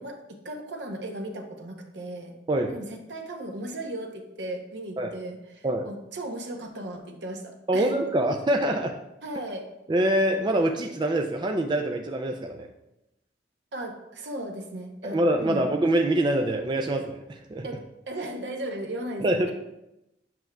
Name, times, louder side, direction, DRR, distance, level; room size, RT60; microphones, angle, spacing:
voice 1, 0.0-2.3 2.7-8.0 9.2-9.7 13.7-15.7 17.6-17.8 18.1-19.5, right 1 dB, 75° right, 4 dB, 0.8 m, -36 dB
voice 2, 7.7-8.9 9.9-12.7 15.0-17.7 19.2-19.5, right 1 dB, 25° right, 3 dB, 0.4 m, -25 dB
7.7 x 6.0 x 2.3 m, 0.89 s
head